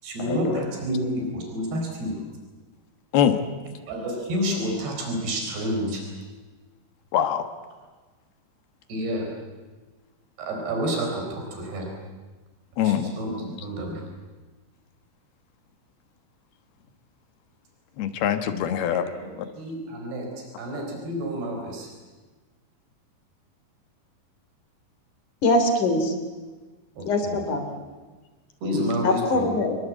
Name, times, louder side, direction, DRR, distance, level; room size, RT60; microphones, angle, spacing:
voice 1, 0.0-2.2 3.9-6.0 8.9-9.3 10.4-11.9 12.8-14.1 18.9-21.9 27.0-27.4 27.7-27.8 28.6-29.5, equal, 80° right, 1 dB, 6.6 m, -29 dB
voice 2, 7.1-7.5 12.8-13.1 18.0-19.0, left 9 dB, 75° left, 9 dB, 3.3 m, -23 dB
voice 3, 25.4-26.2 27.1-27.7 29.0-29.8, left 2 dB, 50° left, 6 dB, 4.5 m, -22 dB
26.5 x 22.0 x 8.5 m, 1.3 s
omnidirectional pair, 4.6 m